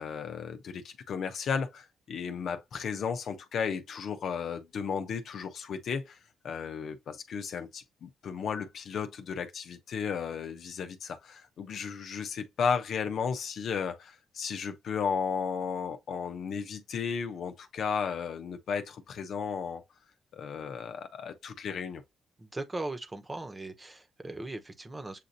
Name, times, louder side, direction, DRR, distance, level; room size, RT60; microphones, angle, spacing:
voice 1, 0.0-6.2 6.4-19.8 20.3-22.0, left 6 dB, 70° left, 0.8 m, -34 dB
voice 2, 22.4-25.2, right 2 dB, 25° right, 1.1 m, -39 dB
7.5 x 2.6 x 2.7 m
supercardioid pair, 55°, 0 cm